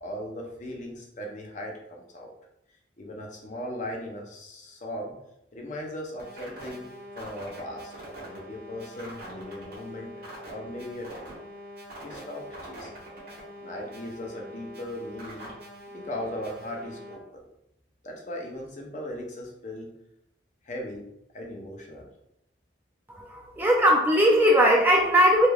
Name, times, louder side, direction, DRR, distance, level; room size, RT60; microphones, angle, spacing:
voice 1, 0.0-2.3 3.0-5.1 5.5-6.9 7.2-7.9 8.2-10.1 10.5-11.4 12.0-13.0 13.6-15.5 15.9-17.4 18.0-19.9 20.6-21.1 21.3-22.1, left 1 dB, 40° left, 0 dB, 0.6 m, -38 dB
sound 1, 6.2-17.1, equal, 55° right, 1.2 m, -43 dB
voice 2, 23.1-25.5, equal, 10° right, -2 dB, 0.3 m, -19 dB
3.3 x 3.2 x 2.3 m, 0.82 s
head